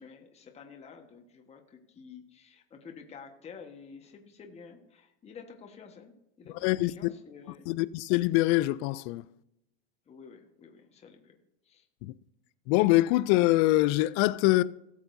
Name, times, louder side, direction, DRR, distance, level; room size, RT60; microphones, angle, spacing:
voice 1, 0.0-6.1 6.4-7.7 10.1-11.4 11.6-11.9, left 6 dB, 20° left, 1.4 m, -50 dB
voice 2, 6.6-7.1 7.7-9.3 12.0-12.1 12.7-14.6, left 18 dB, 40° left, 0.4 m, -24 dB
18.0 x 7.2 x 2.7 m
supercardioid pair, 130°, 33 cm